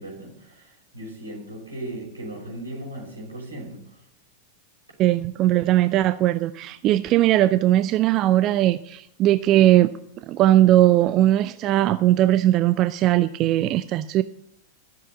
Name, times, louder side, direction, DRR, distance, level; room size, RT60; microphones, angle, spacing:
voice 1, 0.0-3.9, right 1 dB, 80° right, -1 dB, 5.7 m, -37 dB
voice 2, 5.0-9.9 10.3-14.2, right 13 dB, 35° right, 13 dB, 0.5 m, -19 dB
13.5 x 7.5 x 8.9 m, 0.71 s
figure-of-eight pair, 90°, 0 cm